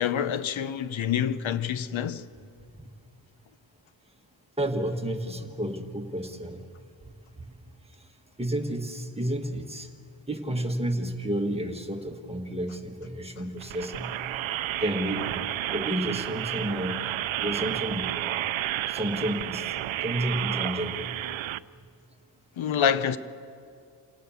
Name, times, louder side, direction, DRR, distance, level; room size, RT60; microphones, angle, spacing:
voice 1, 0.0-2.2 22.6-23.2, left 8 dB, 85° left, 0.9 m, -27 dB
voice 2, 4.6-6.6 7.4-7.5 8.4-9.9 10.3-14.1 14.8-15.4 15.7-17.1 17.4-18.4 18.9-19.7 20.0-21.1 21.8-21.9, right 1 dB, 15° right, 1.4 m, -31 dB
sound 1, 13.6-21.6, right 13 dB, 85° right, 0.6 m, -31 dB
28.0 x 18.0 x 7.0 m
wide cardioid pair, 165°, 46 cm